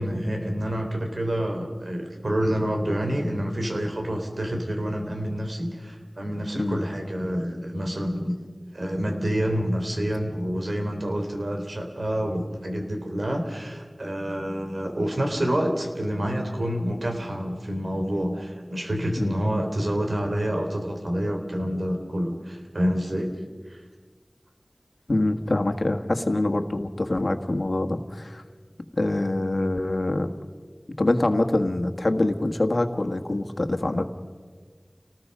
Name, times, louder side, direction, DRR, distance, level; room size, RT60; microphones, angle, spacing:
voice 1, 0.0-8.4 8.7-23.3 23.7-23.8, equal, 80° right, 3 dB, 3.6 m, -28 dB
voice 2, 25.1-28.4 29.0-30.3 31.0-34.1, left 2 dB, 70° left, 6 dB, 1.6 m, -25 dB
29.0 x 19.5 x 5.5 m, 1.5 s
wide cardioid pair, 40°, 0 cm